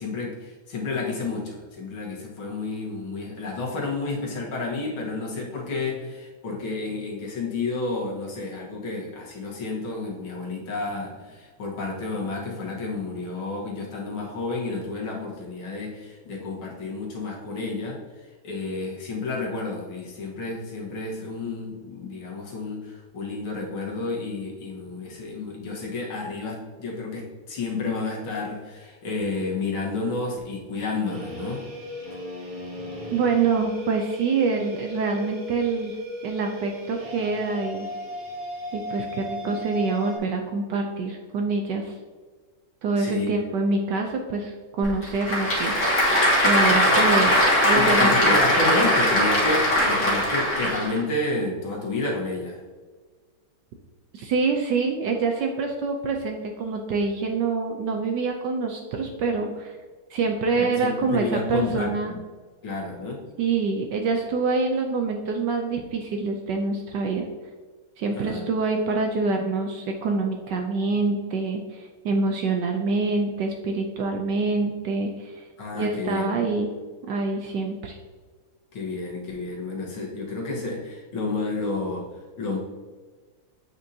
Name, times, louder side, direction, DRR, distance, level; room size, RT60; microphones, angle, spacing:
voice 1, 0.0-31.7 43.0-43.4 47.7-52.6 60.5-62.2 62.6-63.2 68.1-68.5 75.6-76.5 78.7-82.6, left 3 dB, 70° left, -2 dB, 2.1 m, -30 dB
sound 1, 31.1-40.2, left 1 dB, 45° right, 2.0 m, -36 dB
voice 2, 33.1-36.0 36.2-37.9 38.7-42.0 42.8-45.8 46.4-48.4 54.1-59.8 60.1-62.1 63.4-67.3 68.0-75.5 75.7-76.7 77.1-78.0, right 4 dB, 70° right, 3 dB, 1.1 m, -26 dB
Applause / Crowd, 44.8-51.0, equal, 50° left, 1.8 m, -20 dB
7.9 x 5.2 x 2.8 m, 1.4 s
omnidirectional pair, 2.3 m